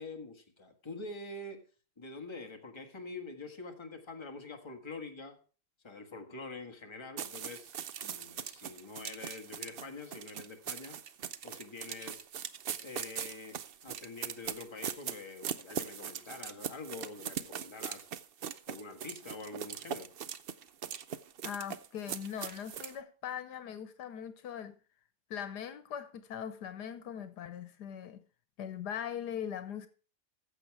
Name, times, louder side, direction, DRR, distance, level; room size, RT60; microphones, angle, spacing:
voice 1, 0.0-1.6 2.0-5.4 5.8-7.7 8.0-11.0 11.4-12.3 12.8-18.1 18.7-20.1, left 3 dB, 20° left, 1.5 m, -45 dB
sound 1, 7.2-23.0, right 8 dB, 70° right, 0.5 m, -41 dB
voice 2, 21.4-24.8 25.3-28.2 28.6-29.9, left 9 dB, 85° left, 1.5 m, -40 dB
14.5 x 7.3 x 4.7 m
omnidirectional pair, 1.7 m